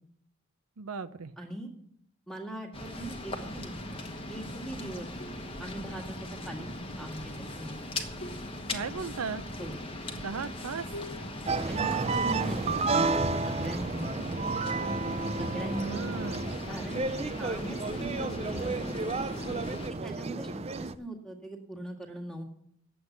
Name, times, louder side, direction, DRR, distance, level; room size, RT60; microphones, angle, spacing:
voice 1, 0.8-1.3 8.7-9.4 10.2-10.9 15.8-16.4, right 5 dB, 85° right, 12 dB, 0.6 m, -36 dB
voice 2, 1.4-1.7 2.3-3.8 4.3-5.1 5.6-6.7 7.0-7.8 9.6-9.7 11.7-12.9 13.4-14.1 15.4-16.1 16.7-19.1 19.9-22.4, right 1 dB, 5° left, 1 dB, 1.8 m, -40 dB
sound 1, 2.7-19.9, left 1 dB, 25° left, 1.3 m, -40 dB
sound 2, 5.2-5.7 7.0-7.4 8.2-8.8 9.6-10.1 10.9-11.4 12.1-13.7 14.8-15.2 16.6-16.9, left 1 dB, 50° left, 1.1 m, -47 dB
sound 3, 11.5-20.9, right 3 dB, 30° right, 0.4 m, -31 dB
9.8 x 8.0 x 8.1 m, 0.72 s
head